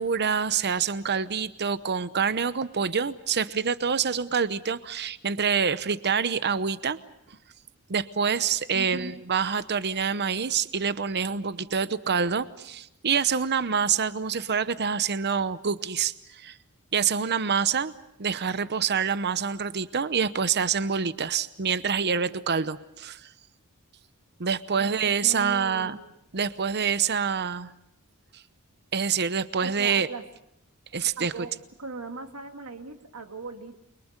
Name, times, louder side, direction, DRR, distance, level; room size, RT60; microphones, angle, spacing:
voice 1, 0.0-7.0 7.3-7.4 7.9-16.6 16.9-17.9 18.2-23.3 24.4-26.0 26.3-27.7 28.3-28.4 28.9-30.1 30.9-31.3, right 6 dB, 50° right, 14 dB, 0.9 m, -26 dB
voice 2, 8.7-9.2 24.8-26.1 29.6-30.2 31.2-31.5 31.8-33.8, right 3 dB, 70° right, 6 dB, 2.3 m, -39 dB
29.0 x 23.5 x 6.6 m, 0.79 s
head